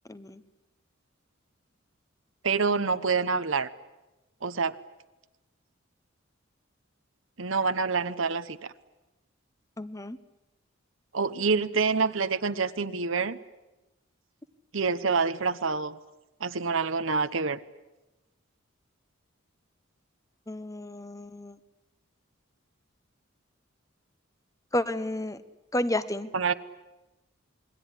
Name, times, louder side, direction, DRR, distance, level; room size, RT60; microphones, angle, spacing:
voice 1, 0.1-0.4 9.8-10.2 20.5-21.6 24.7-25.4 25.7-26.3, left 1 dB, 15° left, 13 dB, 1.1 m, -31 dB
voice 2, 2.4-3.7 4.4-4.7 7.4-8.7 11.1-13.4 14.7-16.0 16.4-17.6 26.3-26.5, right 4 dB, 75° right, 11 dB, 1.1 m, -27 dB
27.5 x 21.5 x 9.9 m, 1.0 s
head